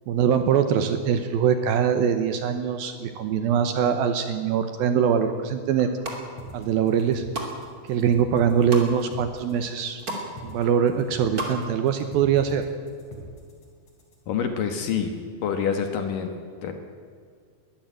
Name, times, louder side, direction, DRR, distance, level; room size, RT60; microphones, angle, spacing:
voice 1, 0.1-5.9 6.5-7.2 7.9-10.0 10.4-12.7, right 8 dB, 75° right, 8 dB, 2.4 m, -23 dB
sound 1, 5.8-6.2 6.8-7.5 7.9-8.9 9.4-9.5 9.7-10.3 10.6-11.5 11.8-11.9, right 2 dB, 25° right, 2.4 m, -33 dB
sound 2, 6.4-14.4, equal, 40° left, 4.2 m, -42 dB
voice 2, 14.3-15.1 15.4-16.3 16.6-16.7, left 7 dB, 65° left, 6 dB, 2.4 m, -26 dB
21.5 x 13.5 x 9.0 m, 2.1 s
omnidirectional pair, 5.0 m